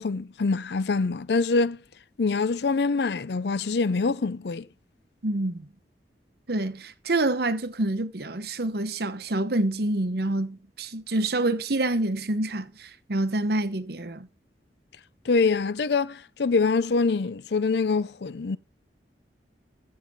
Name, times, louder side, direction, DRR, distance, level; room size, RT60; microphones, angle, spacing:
voice 1, 0.0-1.8 2.2-4.7 15.3-18.6, left 4 dB, 65° left, 0.5 m, -25 dB
voice 2, 5.2-5.7 6.5-14.3, right 2 dB, 60° right, 1.0 m, -27 dB
16.0 x 6.6 x 3.6 m
head